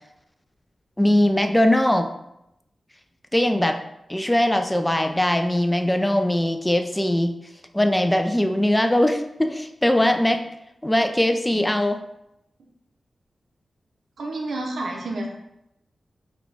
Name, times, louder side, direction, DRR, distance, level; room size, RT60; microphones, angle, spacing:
voice 1, 1.0-2.1 3.3-3.8 4.1-7.3 7.7-10.4 10.8-12.0, left 1 dB, 15° left, 6 dB, 0.3 m, -20 dB
voice 2, 14.2-15.3, right 2 dB, 85° right, 1 dB, 0.6 m, -29 dB
3.8 x 2.3 x 3.3 m, 0.85 s
cardioid pair, 55°, 0 cm